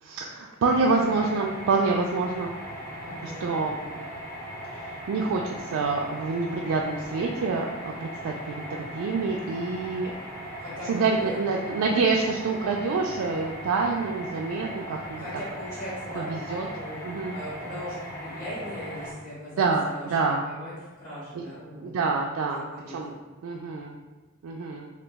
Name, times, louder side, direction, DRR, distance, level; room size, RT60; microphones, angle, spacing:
voice 1, 0.0-2.5 3.2-3.8 4.7-10.1 10.9-15.2 16.1-16.7 17.0-17.4 19.6-19.8 20.1-20.4 21.3-21.5 21.7-23.1 23.4-24.0 24.4-24.9, right 4 dB, 80° right, 0 dB, 0.3 m, -27 dB
sound 1, 0.6-19.1, equal, 15° left, 0.9 m, -39 dB
voice 2, 3.0-3.5 10.6-11.4 15.2-17.0 17.3-20.1 20.4-21.9 22.5-23.2, equal, 40° left, -10 dB, 1.3 m, -39 dB
2.9 x 2.4 x 3.4 m, 1.2 s
head